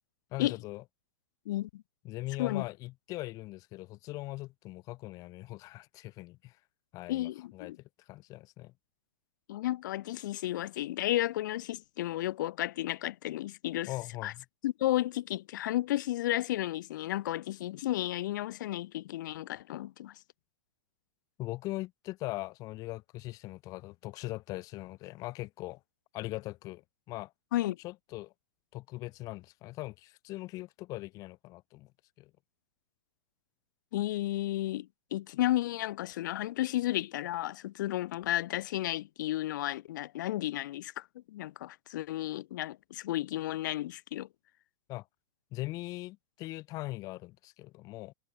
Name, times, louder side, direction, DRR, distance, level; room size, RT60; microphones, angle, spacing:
voice 1, 0.3-0.8 2.0-6.6 6.9-7.7 8.1-8.7 13.9-14.4 21.4-25.8 26.1-26.8 27.1-27.3 27.8-28.3 28.7-31.9 32.2-32.3 44.9-45.1 45.5-48.1, left 19 dB, 35° left, 0.8 m, -40 dB
voice 2, 1.5-1.8 2.4-2.6 7.1-7.8 9.5-13.9 14.2-14.3 14.6-20.2 27.5-27.8 33.9-44.3, left 15 dB, 65° left, 0.4 m, -33 dB
hypercardioid pair, 140°, 11 cm